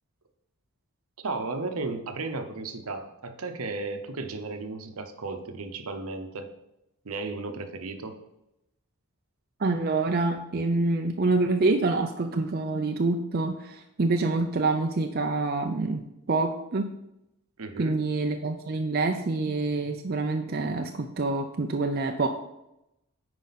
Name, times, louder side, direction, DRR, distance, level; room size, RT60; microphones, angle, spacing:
voice 1, 1.2-6.5 7.0-8.2 17.6-18.0, right 3 dB, 75° right, 7 dB, 0.9 m, -34 dB
voice 2, 9.6-16.9 17.8-22.3, right 3 dB, 45° right, 4 dB, 0.5 m, -26 dB
9.4 x 4.9 x 4.1 m, 0.86 s
head